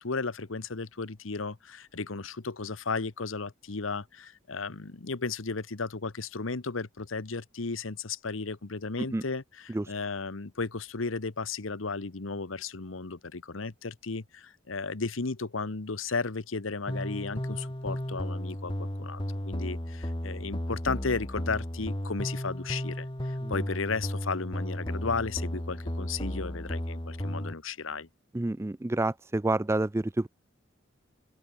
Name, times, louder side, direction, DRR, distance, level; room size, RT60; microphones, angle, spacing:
voice 1, 0.0-28.1, left 4 dB, 90° left, 1.1 m, -34 dB
sound 1, 16.9-27.5, equal, 25° left, 2.4 m, -34 dB
voice 2, 28.3-30.3, right 2 dB, 15° right, 0.4 m, -29 dB
open air
head